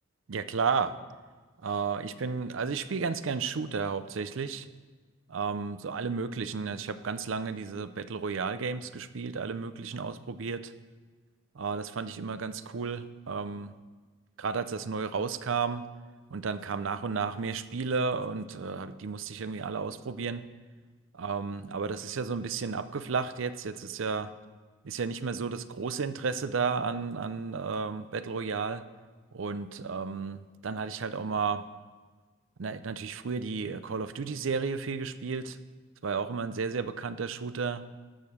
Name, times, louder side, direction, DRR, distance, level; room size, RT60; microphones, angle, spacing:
voice 1, 0.3-0.9 1.6-4.7 5.3-10.7 11.5-13.7 14.4-15.8 16.3-20.4 21.1-24.3 24.8-28.8 29.3-30.4 30.6-31.6 32.6-35.6 36.0-37.8, right 5 dB, 70° right, 12 dB, 0.5 m, -32 dB
12.5 x 6.8 x 6.2 m, 1.4 s
head